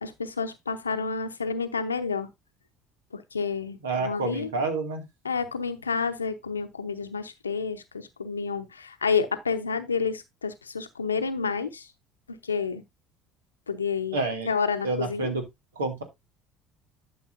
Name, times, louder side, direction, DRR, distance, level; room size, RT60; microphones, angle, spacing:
voice 1, 0.0-2.3 3.1-4.5 5.2-11.9 12.4-12.8 13.7-14.2 14.4-15.3, left 5 dB, 85° left, 0.8 m, -29 dB
voice 2, 3.8-5.0 14.1-14.5 14.8-15.4 15.8-16.0, right 3 dB, 80° right, 2.2 m, -28 dB
12.0 x 6.6 x 2.6 m
figure-of-eight pair, 60°, 0 cm